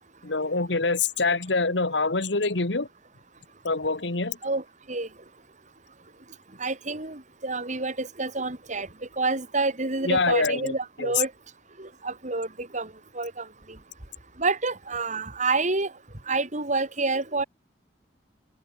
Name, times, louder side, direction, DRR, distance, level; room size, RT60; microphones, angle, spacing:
voice 1, 0.2-2.9 3.6-4.4 10.0-10.7 11.0-11.1, left 3 dB, 85° left, 1.9 m, -25 dB
voice 2, 4.4-5.1 6.6-8.9 9.2-11.3 11.8-13.5 14.4-15.9 16.3-17.4, right 3 dB, 45° right, 4.0 m, -28 dB
head